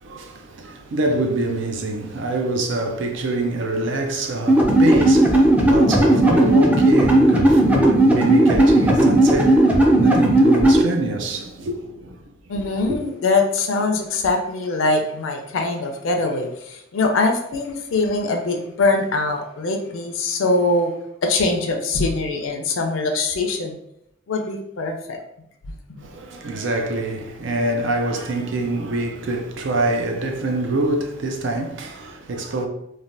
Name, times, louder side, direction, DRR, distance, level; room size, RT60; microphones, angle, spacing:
voice 1, 0.0-12.2 12.9-13.0 26.0-32.7, right 2 dB, 70° right, 0.4 m, -25 dB
sound 1, 4.5-10.8, right 1 dB, 5° right, 0.3 m, -15 dB
voice 2, 12.5-20.9 21.2-23.7 24.3-25.2, left 3 dB, 90° left, 0.4 m, -22 dB
3.2 x 2.2 x 2.5 m
head